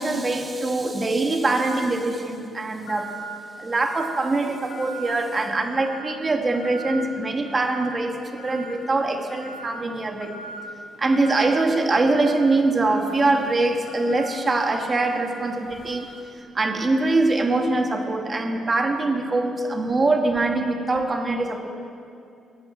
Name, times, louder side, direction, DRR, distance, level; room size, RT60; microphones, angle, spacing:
voice 1, 0.0-3.1 3.6-10.3 11.0-16.1 16.5-21.7, right 2 dB, 30° right, 4 dB, 2.0 m, -23 dB
sound 1, 2.9-3.4 3.8-4.2 4.7-5.2 5.6-6.1 6.5-7.0 7.4-7.9 8.4-8.8 9.3-9.7 10.2-10.6 11.1-11.5 12.0-16.2, right 3 dB, 80° left, 4.5 m, -40 dB
16.5 x 10.5 x 7.9 m, 2.5 s
cardioid pair, 90°, 0 cm